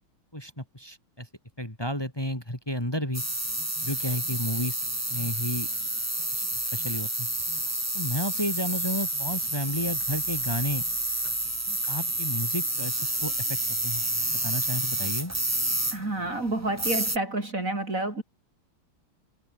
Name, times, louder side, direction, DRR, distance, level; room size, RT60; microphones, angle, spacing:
voice 1, 0.3-1.3 1.6-3.2 3.8-4.8 5.1-5.7 6.3-7.3 7.9-10.8 11.9-14.0 14.4-15.3, equal, 10° left, 4.1 m, -32 dB
sound 1, 3.1-17.2, right 1 dB, 10° right, 1.3 m, -29 dB
voice 2, 15.9-18.2, right 2 dB, 35° right, 4.4 m, -29 dB
omnidirectional pair, 2.4 m